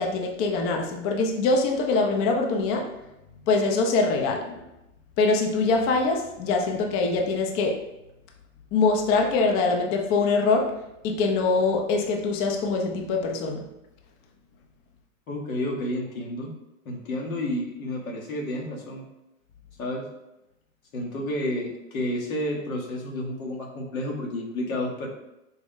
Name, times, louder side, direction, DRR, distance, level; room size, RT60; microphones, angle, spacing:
voice 1, 0.0-2.9 3.5-4.6 5.2-7.8 8.7-10.8 11.0-13.7, left 3 dB, 35° left, 2 dB, 0.6 m, -23 dB
voice 2, 15.3-16.5 16.8-19.0 19.8-20.1 20.9-25.1, left 1 dB, 85° left, 0 dB, 1.1 m, -30 dB
4.1 x 2.2 x 3.6 m, 0.89 s
hypercardioid pair, 110°, 41 cm